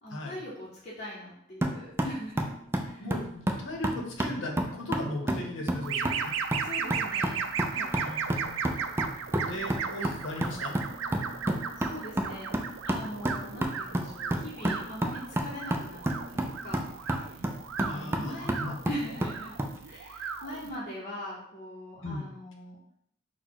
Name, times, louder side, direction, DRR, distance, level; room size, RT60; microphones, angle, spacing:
voice 1, 0.0-2.5 2.8-3.0 6.6-7.9 11.8-12.5 12.8-16.0 16.3-17.5 17.8-19.6 19.8-22.8, equal, 35° left, -7 dB, 0.8 m, -41 dB
sound 1, 1.6-19.8, right 1 dB, 10° right, 0.3 m, -32 dB
voice 2, 3.0-6.3 7.9-8.6 9.4-10.8 17.8-18.8 22.0-22.3, left 1 dB, 70° left, 1 dB, 0.9 m, -37 dB
sound 2, 5.8-20.7, right 6 dB, 85° right, 0.4 m, -36 dB
4.1 x 2.2 x 4.6 m, 0.72 s
head